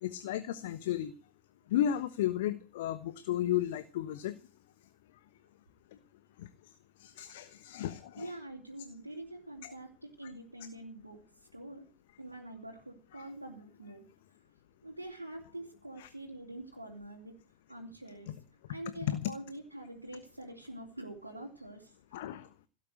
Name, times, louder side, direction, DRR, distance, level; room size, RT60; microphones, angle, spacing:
voice 1, 0.0-1.1 1.7-4.4 6.4-6.5 7.0-8.3 9.6-9.7 16.0-16.1 19.1-19.3 22.1-22.5, left 11 dB, 55° left, 13 dB, 1.2 m, -33 dB
voice 2, 8.2-11.9 12.2-14.1 14.8-17.3 17.7-18.4 18.7-22.2, right 1 dB, 85° right, -1 dB, 3.1 m, -45 dB
17.0 x 9.2 x 7.8 m, 0.35 s
figure-of-eight pair, 90°, 0 cm